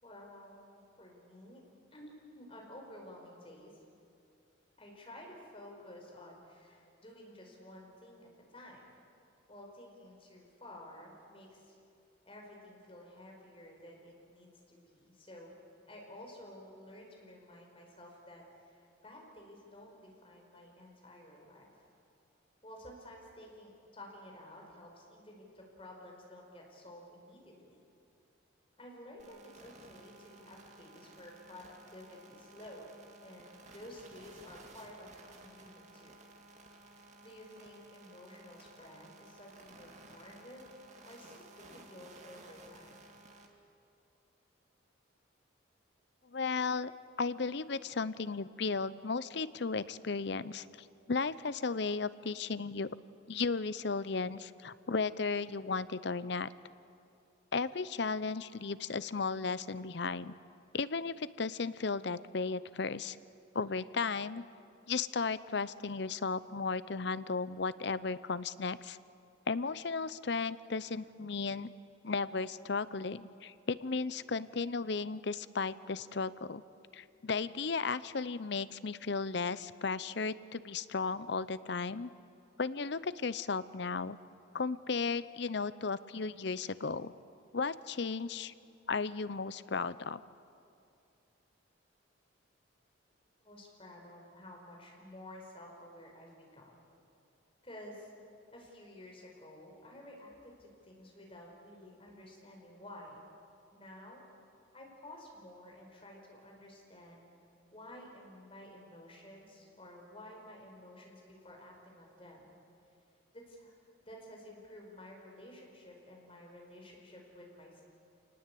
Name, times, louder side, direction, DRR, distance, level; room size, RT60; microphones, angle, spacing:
voice 1, 0.0-1.6 1.9-3.7 4.8-8.9 9.5-11.7 12.2-15.5 15.9-21.9 22.6-27.8 28.8-36.1 36.7-40.8 41.0-43.0 93.4-96.8 97.6-98.1 98.5-103.2 103.7-104.2 104.7-107.2 107.7-112.5 113.3-113.7 114.1-117.8, left 1 dB, 25° left, -1 dB, 4.9 m, -52 dB
sound 1, 29.2-43.5, right 2 dB, 35° right, 2.3 m, -56 dB
voice 2, 46.3-50.7 51.1-52.9 53.3-56.5 57.5-60.3 60.7-63.2 63.5-64.4 64.9-69.0 69.5-71.7 72.0-76.6 76.9-82.1 82.6-84.2 84.5-87.1 87.5-88.5 88.9-90.2, left 4 dB, 55° left, 16 dB, 0.6 m, -35 dB
27.5 x 19.5 x 8.5 m, 2.5 s
head